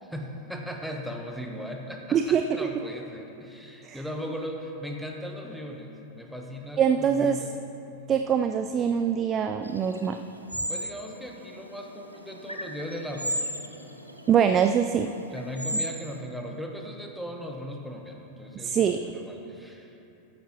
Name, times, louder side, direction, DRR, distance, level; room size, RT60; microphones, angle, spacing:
voice 1, 0.0-7.6 10.7-13.5 15.3-20.0, equal, ahead, 1 dB, 1.1 m, -38 dB
voice 2, 2.1-2.7 3.8-4.0 6.8-7.4 8.1-10.2 14.3-15.1 18.6-19.0, right 8 dB, 30° right, 7 dB, 0.3 m, -23 dB
sound 1, 9.6-16.2, equal, 90° right, 0.8 m, -36 dB
14.0 x 10.5 x 3.0 m, 2.9 s
figure-of-eight pair, 90°, 0 cm